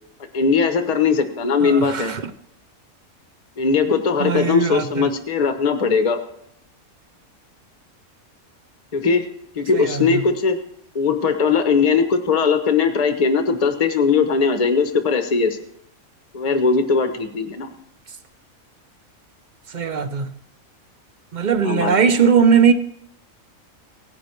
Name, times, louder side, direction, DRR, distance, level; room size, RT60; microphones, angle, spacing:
voice 1, 0.3-2.1 3.6-6.2 8.9-10.6 10.9-15.6 16.3-17.7 21.6-22.0, left 5 dB, 30° left, 1.0 m, -19 dB
voice 2, 1.6-2.2 4.2-5.1 9.7-10.2 19.7-20.3 21.3-22.7, right 6 dB, 45° right, 0.7 m, -19 dB
17.0 x 10.5 x 4.5 m
omnidirectional pair, 1.5 m